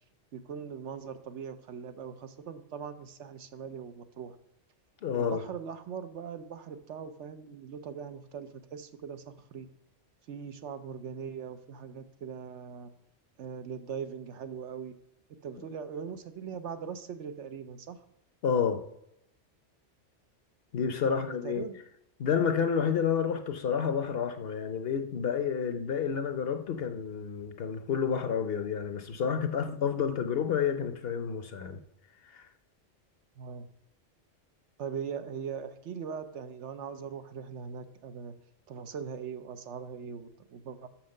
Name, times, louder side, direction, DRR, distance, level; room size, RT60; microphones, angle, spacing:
voice 1, 0.3-4.4 5.1-9.7 10.3-12.9 13.4-14.9 15.4-18.0 21.1-21.8 33.4-33.7 34.8-38.3 38.7-40.9, right 7 dB, 75° right, 1.0 m, -40 dB
voice 2, 5.0-5.4 18.4-18.8 20.7-21.6 22.2-31.8 32.3-32.4, left 7 dB, 60° left, 0.9 m, -30 dB
6.3 x 5.7 x 6.5 m
omnidirectional pair, 1.2 m